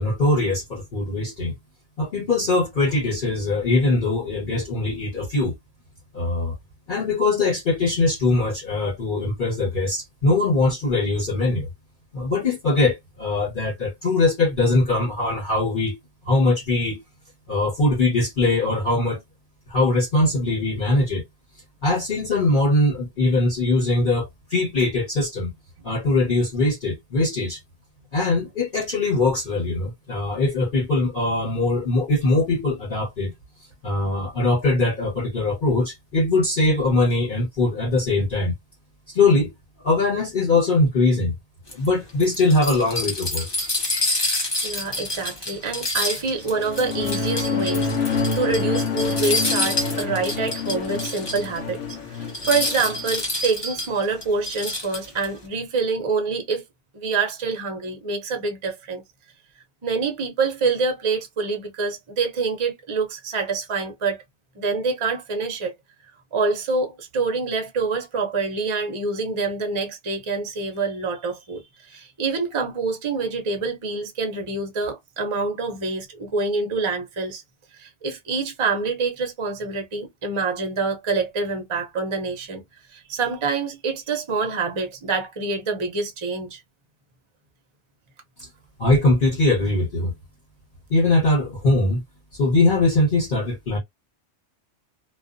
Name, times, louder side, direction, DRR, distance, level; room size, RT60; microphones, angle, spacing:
voice 1, 0.0-1.5 2.0-5.5 6.1-6.6 6.9-11.7 12.1-16.0 16.2-17.0 17.5-19.2 19.7-21.2 21.8-25.5 25.8-27.6 28.1-33.3 33.8-38.6 39.1-39.5 39.8-41.3 41.7-43.5 88.8-90.1 90.9-92.0 92.3-93.8, left 2 dB, 50° left, 1.1 m, -21 dB
sound 1, 41.7-51.6 51.9-52.0 52.3-55.3, left 2 dB, 25° left, 0.7 m, -28 dB
voice 2, 44.6-56.6 56.9-59.0 59.8-64.2 64.6-65.7 66.3-77.4 77.7-82.6 82.9-86.6, right 4 dB, 40° right, 0.4 m, -26 dB
sound 2, 46.5-53.1, left 4 dB, 90° left, 1.1 m, -27 dB
2.4 x 2.3 x 2.5 m
omnidirectional pair, 1.2 m